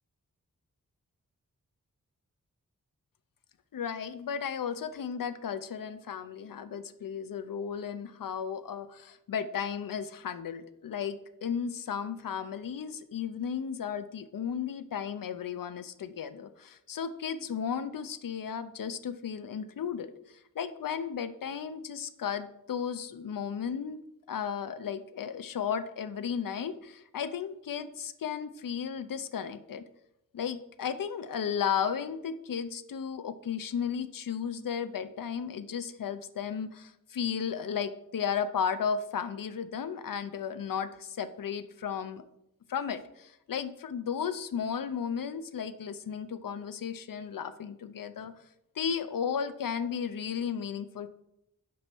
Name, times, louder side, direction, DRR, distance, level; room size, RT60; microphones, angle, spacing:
voice 1, 3.7-20.1 20.5-24.0 24.3-29.8 30.3-42.2 42.7-48.3 48.8-51.1, left 7 dB, 90° left, 12 dB, 0.6 m, -34 dB
8.5 x 5.5 x 6.0 m, 0.81 s
wide cardioid pair, 65°, 32 cm